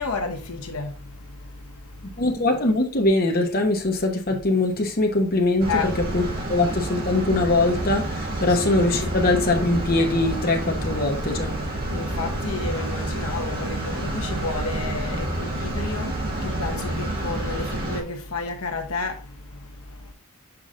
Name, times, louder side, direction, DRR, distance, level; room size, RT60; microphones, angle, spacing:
voice 1, 0.0-2.2 5.7-5.9 8.5-8.6 11.8-20.1, left 4 dB, 75° left, 1.1 m, -32 dB
voice 2, 2.2-6.2 6.5-11.5, left 2 dB, 45° left, 1.0 m, -22 dB
sound 1, 5.6-18.0, right 1 dB, 45° right, 2.0 m, -29 dB
6.0 x 4.9 x 3.7 m
head